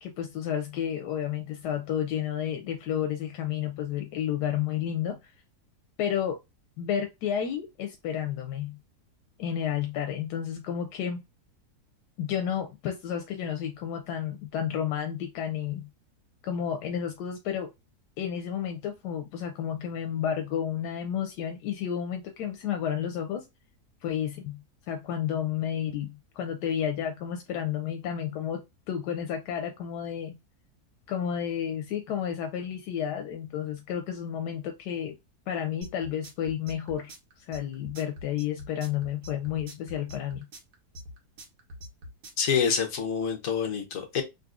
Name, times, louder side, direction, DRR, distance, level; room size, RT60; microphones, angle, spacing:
voice 1, 0.0-5.3 6.0-6.4 6.8-8.8 9.4-11.2 12.2-15.9 16.4-17.7 18.2-23.5 24.0-30.4 31.1-35.2 35.5-37.1 37.4-40.4, left 9 dB, 90° left, 1.2 m, -31 dB
sound 1, 35.8-42.5, equal, 70° right, 1.5 m, -44 dB
voice 2, 42.4-44.2, left 7 dB, 60° left, 1.1 m, -27 dB
3.9 x 2.8 x 2.4 m
omnidirectional pair, 1.7 m